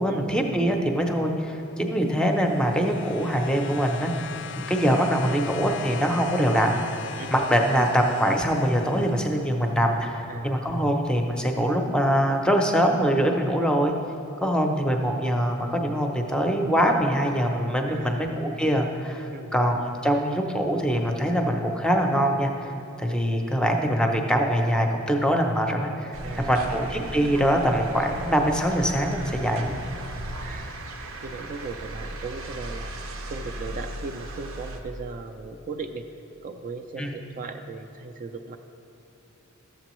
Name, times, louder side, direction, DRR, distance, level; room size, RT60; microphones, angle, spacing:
voice 1, 0.0-4.3 4.6-6.8 7.3-13.9 14.4-22.7 23.0-29.7 37.0-37.1, equal, 5° left, 3 dB, 0.6 m, -23 dB
sound 1, 2.0-9.7 10.8-10.9, left 7 dB, 60° left, 0.4 m, -39 dB
voice 2, 10.3-10.6 17.9-18.3 19.3-19.6 26.2-26.7 30.4-32.9 33.3-36.0 36.4-38.6, right 4 dB, 40° right, 6 dB, 0.3 m, -37 dB
sound 2, 26.1-34.8, right 1 dB, 80° right, 0.7 m, -36 dB
12.5 x 7.5 x 3.0 m, 2.8 s
head